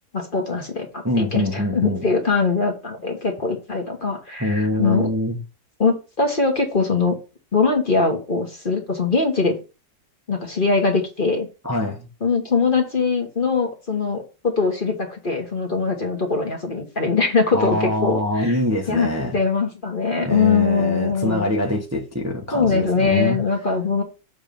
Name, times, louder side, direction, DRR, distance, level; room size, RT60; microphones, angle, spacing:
voice 1, 0.1-5.1 5.8-7.2 7.5-9.6 10.3-11.5 12.2-18.6 18.9-21.6 22.5-24.0, left 4 dB, 35° left, 1.5 m, -22 dB
voice 2, 1.0-2.0 4.4-5.4 11.6-12.1 17.5-19.4 20.3-23.4, left 1 dB, 10° right, 1.0 m, -24 dB
7.3 x 3.6 x 5.2 m
omnidirectional pair, 1.7 m